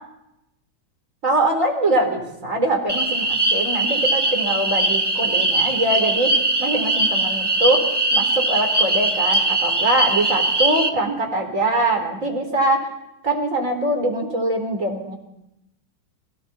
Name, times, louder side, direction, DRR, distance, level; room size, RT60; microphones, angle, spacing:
voice 1, 1.2-6.3 6.6-7.8 8.1-12.9 13.2-15.2, right 1 dB, 40° right, 3 dB, 4.3 m, -23 dB
sound 1, 2.9-10.9, right 2 dB, 15° right, 1.0 m, -21 dB
29.0 x 22.5 x 4.3 m, 0.86 s
omnidirectional pair, 2.2 m